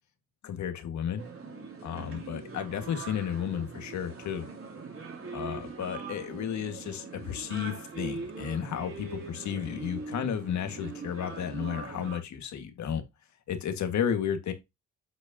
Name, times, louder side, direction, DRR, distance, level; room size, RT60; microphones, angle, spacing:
voice 1, 0.4-1.2 1.8-4.5 5.3-13.0 13.5-14.5, left 8 dB, 70° left, 1.9 m, -33 dB
sound 1, 1.2-12.2, right 4 dB, 45° right, 3.2 m, -42 dB
8.1 x 6.3 x 2.9 m
cardioid pair, 90°, 30 cm